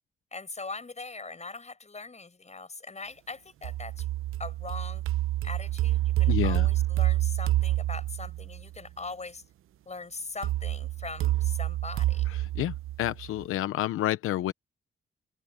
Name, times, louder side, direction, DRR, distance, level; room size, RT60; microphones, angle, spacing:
voice 1, 0.3-4.0 4.4-5.0 5.4-9.4 9.8-12.3, left 3 dB, 35° left, 6.8 m, -41 dB
sound 1, 3.6-8.6 10.4-13.4, right 15 dB, 80° right, 0.9 m, -28 dB
voice 2, 6.3-6.7 12.4-14.5, left 14 dB, 90° left, 0.8 m, -29 dB
open air
supercardioid pair, 60°, 21 cm